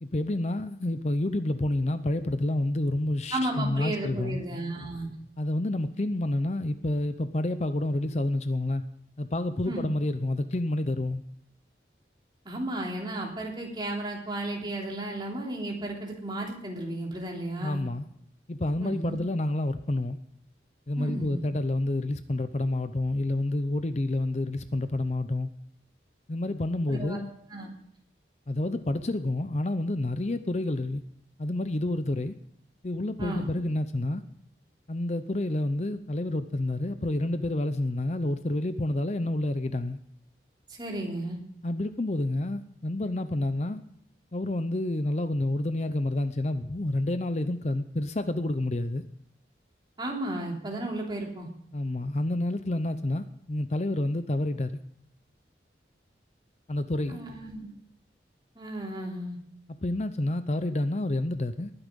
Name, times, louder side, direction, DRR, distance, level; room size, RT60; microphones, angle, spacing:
voice 1, 0.0-4.4 5.4-8.8 9.2-11.2 17.6-18.1 18.5-20.2 20.9-25.5 26.3-27.3 28.5-31.0 31.4-32.3 32.8-34.2 34.9-40.0 41.6-43.8 44.3-49.0 51.7-54.7 56.7-57.2 59.8-61.7, left 1 dB, 40° left, 0.6 m, -29 dB
voice 2, 3.3-5.1 9.7-9.9 12.4-17.8 18.8-19.2 21.0-21.4 26.9-27.2 27.5-27.7 33.2-33.5 40.7-41.4 50.0-51.5 57.1-57.7 58.5-59.4, right 1 dB, 25° right, 3.3 m, -34 dB
20.0 x 9.9 x 5.3 m
head